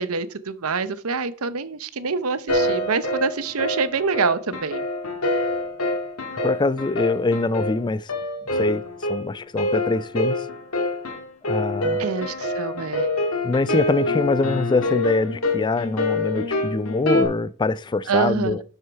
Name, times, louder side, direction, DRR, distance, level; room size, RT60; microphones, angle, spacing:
voice 1, 0.0-4.8 12.0-13.1 18.1-18.6, right 5 dB, 85° right, 0.8 m, -25 dB
sound 1, 2.5-17.2, left 1 dB, 80° left, 2.2 m, -26 dB
voice 2, 6.4-8.1 8.5-8.8 9.1-10.5 11.5-12.1 13.4-18.6, left 3 dB, 20° left, 0.4 m, -23 dB
11.5 x 6.3 x 4.7 m
head